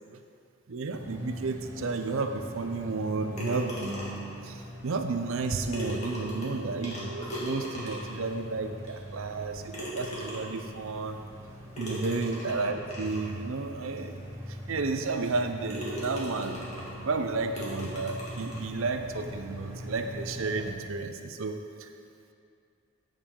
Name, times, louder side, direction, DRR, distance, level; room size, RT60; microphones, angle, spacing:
voice 1, 0.7-4.2 4.4-11.2 11.8-14.1 14.7-16.6 17.0-21.9, right 3 dB, 65° right, 6 dB, 0.5 m, -32 dB
sound 1, 0.9-20.7, equal, 10° right, 0.9 m, -43 dB
sound 2, 3.4-4.3 5.4-5.5 5.7-8.3 8.9-9.0 9.7-10.7 11.8-13.3 14.0-14.1 14.6-14.7 15.2-15.4 15.7-17.0 17.6-18.7, equal, 30° left, 1.7 m, -38 dB
9.0 x 6.4 x 3.8 m, 2.4 s
head